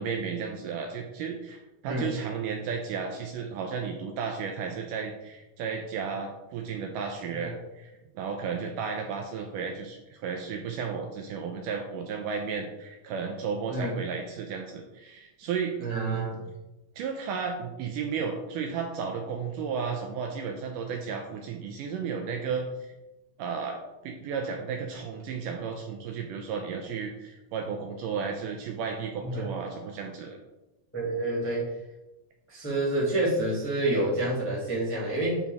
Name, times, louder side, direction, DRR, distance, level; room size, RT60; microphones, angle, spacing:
voice 1, 0.0-16.3 17.0-22.9 23.4-23.8 24.0-30.4, right 6 dB, 80° right, 2 dB, 2.0 m, -33 dB
voice 2, 15.8-16.4 29.2-29.5 30.9-31.7 32.5-35.4, right 1 dB, 5° left, -8 dB, 1.3 m, -28 dB
8.3 x 4.3 x 3.5 m, 1.0 s
omnidirectional pair, 4.1 m